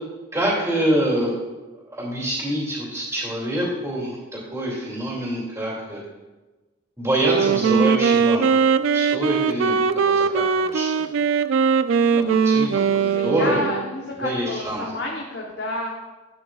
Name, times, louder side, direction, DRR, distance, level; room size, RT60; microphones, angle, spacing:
voice 1, 0.3-1.4 1.9-6.0 7.0-8.6 8.9-11.1 12.2-13.6 14.2-14.8, right 1 dB, 15° right, -5 dB, 2.4 m, -26 dB
Wind instrument woodwind instrument, 7.2-14.0, right 6 dB, 80° right, 0.4 m, -20 dB
voice 2, 13.0-15.9, left 1 dB, 55° left, -2 dB, 1.0 m, -30 dB
11.0 x 9.0 x 2.4 m, 1.2 s
head